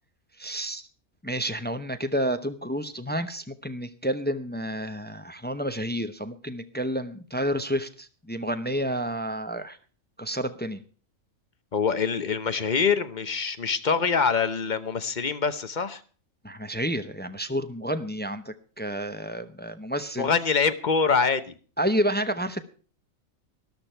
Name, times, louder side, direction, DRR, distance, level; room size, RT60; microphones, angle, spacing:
voice 1, 0.4-0.8 1.2-9.8 10.2-10.8 16.4-20.3 21.8-22.7, equal, 10° left, 10 dB, 0.5 m, -30 dB
voice 2, 11.7-16.0 20.2-21.5, left 5 dB, 40° left, 11 dB, 0.9 m, -24 dB
13.5 x 12.5 x 4.4 m, 0.39 s
omnidirectional pair, 1.4 m